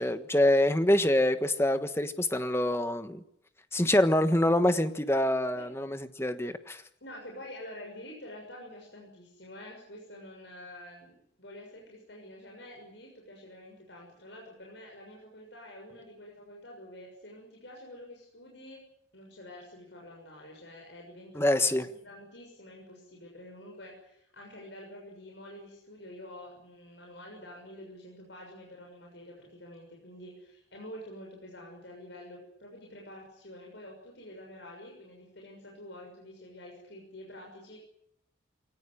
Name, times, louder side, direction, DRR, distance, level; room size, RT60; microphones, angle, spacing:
voice 1, 0.0-3.2 3.7-6.8 21.3-21.9, left 1 dB, 15° left, 9 dB, 1.4 m, -25 dB
voice 2, 7.0-18.8 19.1-37.8, left 1 dB, 65° left, -1 dB, 6.7 m, -48 dB
23.5 x 18.0 x 10.0 m, 0.74 s
head